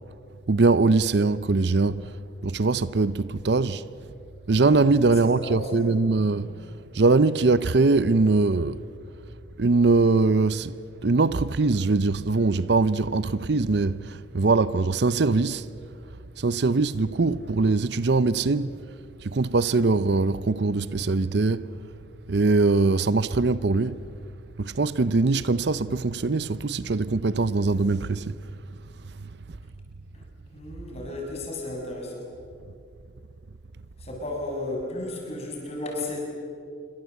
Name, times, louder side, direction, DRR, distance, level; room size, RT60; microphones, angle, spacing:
voice 1, 0.5-2.1 2.4-3.9 4.5-6.5 6.9-8.8 9.6-10.7 11.0-15.7 16.4-18.7 19.2-21.7 22.3-24.0 24.6-28.4, right 3 dB, 60° right, 0.6 m, -22 dB
voice 2, 5.2-6.0 30.5-32.2 34.0-36.2, left 2 dB, 30° left, 6.7 m, -34 dB
27.0 x 24.5 x 8.2 m
head